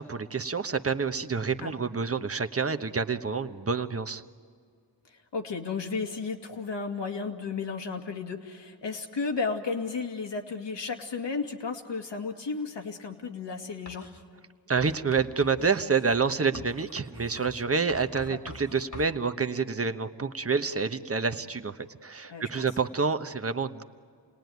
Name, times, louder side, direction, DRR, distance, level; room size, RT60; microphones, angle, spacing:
voice 1, 0.0-4.2 14.7-21.8 22.0-23.8, right 5 dB, 30° right, 9 dB, 1.2 m, -28 dB
voice 2, 5.3-14.1 18.3-18.4 22.3-22.7, left 4 dB, 70° left, 3 dB, 2.5 m, -33 dB
Writing, 13.9-14.2 14.8-19.2, left 3 dB, 40° left, 2.2 m, -46 dB
28.5 x 19.0 x 9.5 m, 2.1 s
cardioid pair, 60°, 44 cm